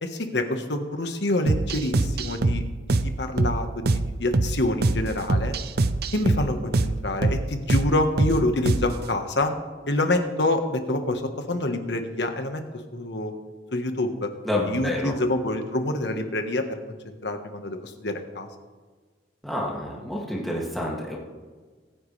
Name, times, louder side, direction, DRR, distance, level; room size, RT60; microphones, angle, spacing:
voice 1, 0.0-2.6 2.9-5.5 6.1-9.5 9.9-12.6 12.9-13.3 13.7-14.3 14.7-18.5, left 1 dB, 70° left, 6 dB, 1.4 m, -27 dB
sound 1, 1.5-9.1, right 2 dB, 60° right, 0.6 m, -25 dB
voice 2, 14.4-15.1 19.4-21.2, left 1 dB, ahead, -4 dB, 2.4 m, -28 dB
24.5 x 9.5 x 3.4 m, 1.4 s
head